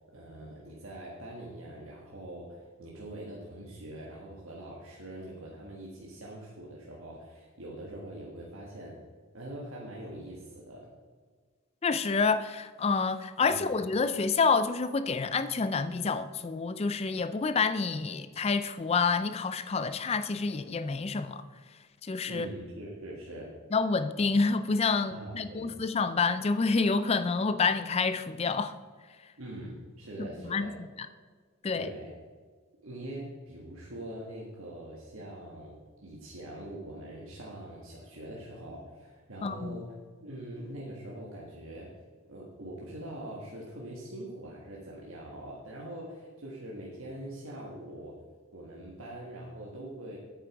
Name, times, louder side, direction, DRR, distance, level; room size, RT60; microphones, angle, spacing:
voice 1, 0.1-9.0 9.3-10.9 13.4-13.8 22.2-23.5 25.1-25.8 29.4-30.7 31.7-32.1 32.8-39.9 40.2-41.9 42.3-48.2 48.5-50.2, right 1 dB, 75° right, -4 dB, 1.6 m, -43 dB
voice 2, 11.8-21.4 22.0-22.5 23.7-28.7 30.2-30.7 31.6-31.9 39.4-39.8, left 4 dB, 30° left, 12 dB, 0.4 m, -28 dB
9.1 x 8.0 x 4.7 m, 1.5 s
head